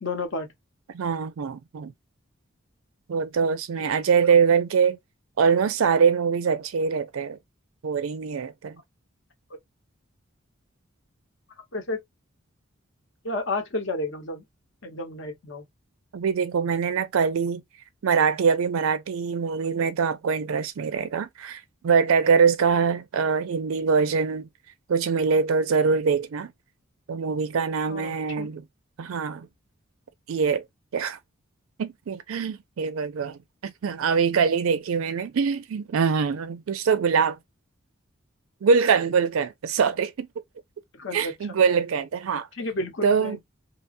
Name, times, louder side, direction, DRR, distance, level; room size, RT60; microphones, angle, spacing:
voice 1, 0.0-0.5 11.7-12.0 13.2-14.4 14.8-15.6 27.9-28.5 41.0-41.6 42.5-43.4, left 2 dB, 60° left, 0.9 m, -31 dB
voice 2, 0.9-1.9 3.1-5.0 5.4-7.4 7.8-8.8 16.1-17.6 18.0-24.5 24.9-26.5 27.1-28.6 29.0-29.5 30.3-30.6 30.9-31.2 31.8-37.4 38.6-40.3 41.1-42.5 43.0-43.4, right 6 dB, 80° right, 0.4 m, -23 dB
2.9 x 2.1 x 2.5 m
head